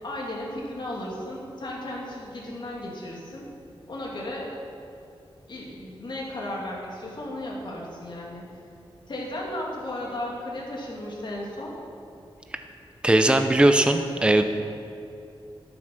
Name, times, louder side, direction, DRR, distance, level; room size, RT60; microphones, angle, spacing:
voice 1, 0.0-3.5 3.9-4.6 5.5-8.5 9.1-11.8, left 1 dB, 55° left, -3 dB, 2.5 m, -35 dB
voice 2, 13.0-14.4, right 1 dB, 10° right, 7 dB, 0.5 m, -19 dB
12.5 x 7.7 x 5.9 m, 2.7 s
wide cardioid pair, 115°, 10 cm